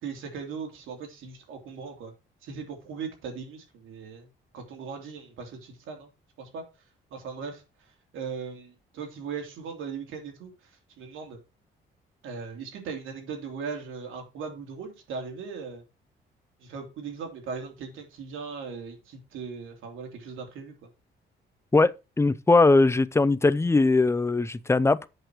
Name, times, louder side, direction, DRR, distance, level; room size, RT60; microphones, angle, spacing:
voice 1, 0.0-2.1 2.4-4.3 4.5-6.1 6.4-6.6 7.1-7.6 8.1-10.7 11.0-11.4 12.2-15.8 16.6-20.9, right 5 dB, 85° right, 3.2 m, -38 dB
voice 2, 22.2-25.1, left 3 dB, 15° left, 0.6 m, -20 dB
8.1 x 6.5 x 4.6 m
cardioid pair, 90°, 20 cm